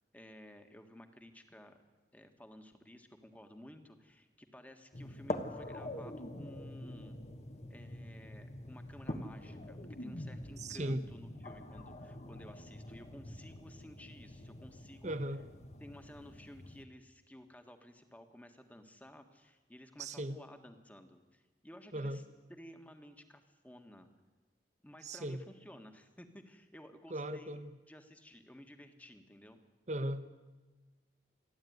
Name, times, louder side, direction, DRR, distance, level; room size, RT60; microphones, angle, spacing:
voice 1, 0.1-1.8 2.1-7.2 7.7-15.1 15.8-22.2 22.5-24.1 24.8-27.6 27.9-29.6, equal, 10° left, 6 dB, 1.6 m, -54 dB
sound 1, 4.9-16.8, left 1 dB, 40° left, 1.3 m, -45 dB
voice 2, 10.6-11.0 15.0-15.4 20.0-20.4 21.9-22.2 25.0-25.4 27.1-27.7 29.9-30.2, right 1 dB, 40° right, 11 dB, 1.1 m, -37 dB
28.0 x 11.0 x 9.5 m, 1.2 s
head